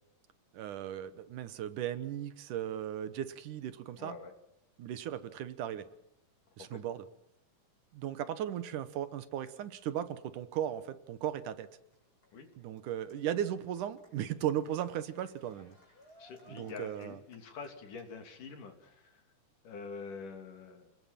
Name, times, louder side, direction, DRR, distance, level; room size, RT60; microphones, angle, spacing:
voice 1, 0.5-4.2 4.8-5.9 6.6-7.1 7.9-11.7 12.6-15.8 16.5-17.2, right 10 dB, 75° right, 13 dB, 2.6 m, -37 dB
voice 2, 4.0-4.3 6.6-6.7 12.3-12.5 16.2-19.1 19.6-20.9, left 5 dB, 70° left, 6 dB, 4.5 m, -46 dB
Cheering, 11.6-18.4, left 1 dB, 25° left, 5.8 m, -62 dB
27.5 x 20.0 x 7.4 m, 0.82 s
omnidirectional pair, 3.8 m